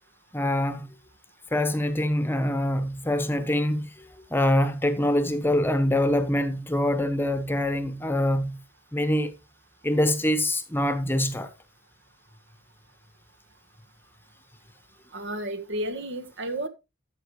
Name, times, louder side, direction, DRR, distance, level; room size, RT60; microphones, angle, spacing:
voice 1, 0.3-0.9 1.5-8.6 8.9-9.3 9.8-11.5, left 1 dB, 10° left, 1.0 m, -25 dB
voice 2, 15.1-16.7, right 1 dB, 60° right, 1.5 m, -32 dB
13.5 x 7.7 x 3.2 m
head